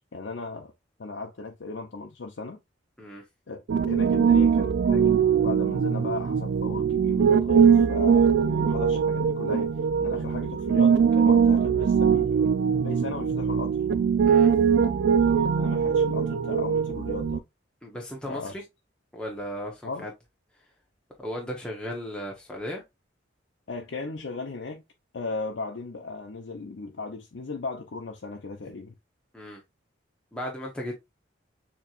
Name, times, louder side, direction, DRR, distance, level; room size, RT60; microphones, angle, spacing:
voice 1, 0.1-0.7 1.0-2.6 3.5-9.7 10.0-12.5 12.8-13.8 15.6-17.4 18.3-18.5 19.8-20.1 23.7-24.8 25.1-28.9, left 3 dB, 80° left, 0.6 m, -36 dB
Piano, 3.7-17.4, right 7 dB, 65° right, 0.4 m, -22 dB
voice 2, 17.8-18.6 19.1-20.1 20.6-20.7 21.2-22.8 29.3-29.6 30.3-30.9, equal, 5° left, 0.9 m, -36 dB
7.0 x 3.0 x 2.4 m
head